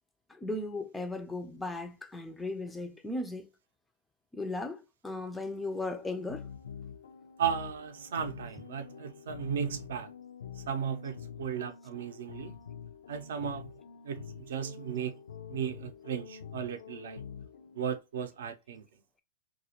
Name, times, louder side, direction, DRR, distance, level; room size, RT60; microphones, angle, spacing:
voice 1, 0.3-3.5 4.3-6.5, left 2 dB, 10° left, 0.3 m, -36 dB
sound 1, 5.5-18.0, left 7 dB, 85° left, 0.4 m, -47 dB
voice 2, 7.4-10.1 10.6-12.5 13.1-13.7 14.0-15.2 15.5-17.2 17.7-18.9, right 8 dB, 75° right, 0.5 m, -35 dB
2.3 x 2.1 x 2.8 m
hypercardioid pair, 125°, 0 cm